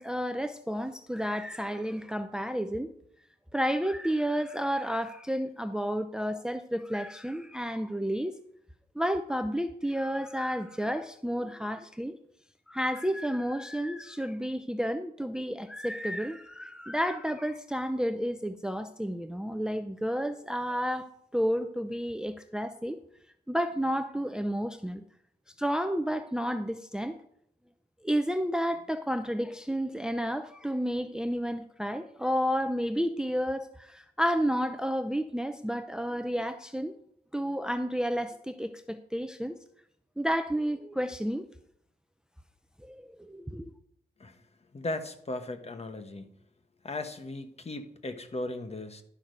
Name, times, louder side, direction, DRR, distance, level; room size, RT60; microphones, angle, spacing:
voice 1, 0.0-2.9 3.5-8.4 9.0-12.2 12.7-23.0 23.5-25.0 25.6-27.2 28.0-37.0 37.3-39.6 40.2-41.5 42.8-43.7, equal, 5° right, 9 dB, 0.6 m, -31 dB
voice 2, 44.7-46.3 46.8-49.0, left 2 dB, 35° left, 8 dB, 1.2 m, -37 dB
11.5 x 6.0 x 5.2 m, 0.70 s
cardioid pair, 80°, 18 cm